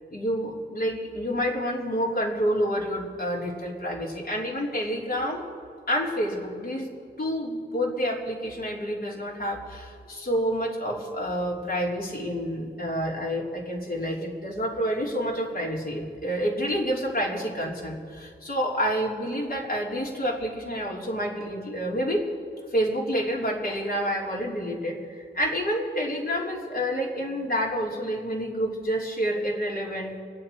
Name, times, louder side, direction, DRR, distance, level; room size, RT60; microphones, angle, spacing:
voice 1, 0.1-5.4 5.9-6.9 7.2-22.3 22.7-30.2, equal, 50° left, -3 dB, 3.0 m, -28 dB
26.5 x 9.4 x 4.5 m, 2.2 s
wide cardioid pair, 150°, 19 cm